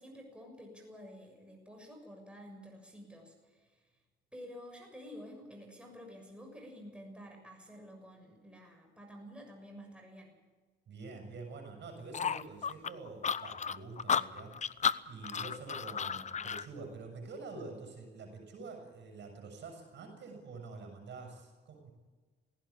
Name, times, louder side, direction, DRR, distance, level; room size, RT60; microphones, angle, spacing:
voice 1, 0.0-3.8 4.3-10.3, equal, 5° right, 2 dB, 6.7 m, -50 dB
voice 2, 10.9-14.7 15.0-21.9, right 3 dB, 65° right, 4 dB, 7.1 m, -47 dB
sound 1, 12.1-16.7, left 7 dB, 35° left, 0.7 m, -33 dB
18.5 x 17.0 x 8.7 m, 1.3 s
cardioid pair, 90°, 20 cm